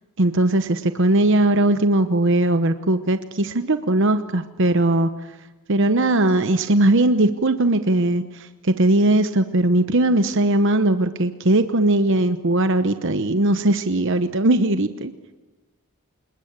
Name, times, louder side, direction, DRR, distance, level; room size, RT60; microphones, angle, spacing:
voice 1, 0.2-5.1 5.7-15.1, right 1 dB, 55° right, 10 dB, 1.0 m, -19 dB
27.0 x 21.5 x 8.9 m, 1.1 s
head